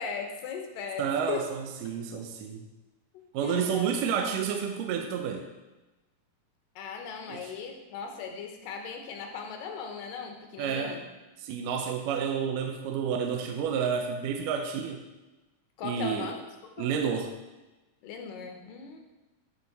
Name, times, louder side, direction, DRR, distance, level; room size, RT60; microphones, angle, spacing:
voice 1, 0.0-1.5 3.1-3.9 6.8-11.0 15.8-16.4 16.8-16.9 18.0-19.0, left 6 dB, 75° left, 3 dB, 2.5 m, -38 dB
voice 2, 1.0-2.6 3.3-5.5 7.3-7.4 10.6-11.0 11.4-15.0 15.8-16.3 16.8-17.3, right 7 dB, 80° right, 4 dB, 2.2 m, -30 dB
12.5 x 4.3 x 4.0 m, 1.1 s
omnidirectional pair, 4.0 m